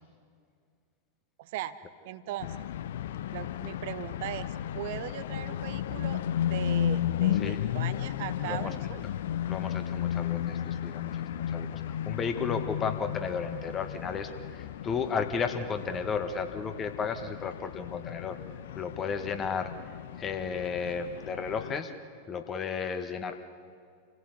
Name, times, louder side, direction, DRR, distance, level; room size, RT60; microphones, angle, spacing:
voice 1, 1.4-1.8 2.0-2.6 3.3-9.1, right 12 dB, 50° right, 12 dB, 0.8 m, -39 dB
sound 1, 2.4-21.8, left 10 dB, 55° left, 0.6 m, -34 dB
voice 2, 8.4-8.7 9.5-18.4 18.7-19.7 20.2-21.9 22.3-23.3, left 6 dB, 25° left, 7 dB, 1.7 m, -33 dB
28.0 x 16.5 x 8.2 m, 2.2 s
figure-of-eight pair, 90°, 0 cm